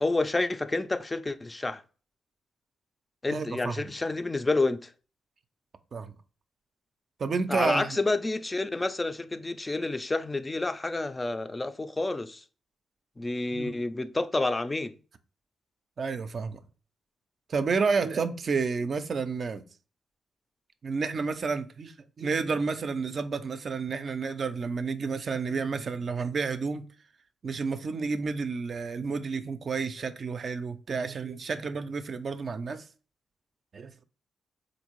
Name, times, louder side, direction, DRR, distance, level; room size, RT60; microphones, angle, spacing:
voice 1, 0.0-1.8 3.2-4.9 7.5-12.4 13.2-14.9, left 2 dB, 25° left, 0.3 m, -29 dB
voice 2, 3.3-3.8 5.9-6.1 7.2-8.0 13.5-13.7 16.0-16.6 17.5-19.6 20.8-26.9 27.4-32.8 33.7-33.9, right 4 dB, 55° right, 0.4 m, -30 dB
3.5 x 2.6 x 3.0 m
supercardioid pair, 50°, 0 cm